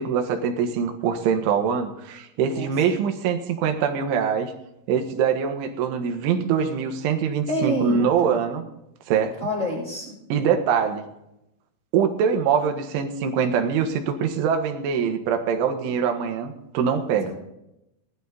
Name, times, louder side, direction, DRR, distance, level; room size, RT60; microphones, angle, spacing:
voice 1, 0.0-4.5 4.9-8.6 9.1-9.3 10.3-11.0 11.9-17.3, right 7 dB, 90° right, 5 dB, 3.9 m, -23 dB
voice 2, 7.5-8.4 9.4-10.2 17.2-17.3, equal, 30° left, -8 dB, 7.2 m, -28 dB
19.0 x 11.5 x 4.0 m, 0.86 s
omnidirectional pair, 5.4 m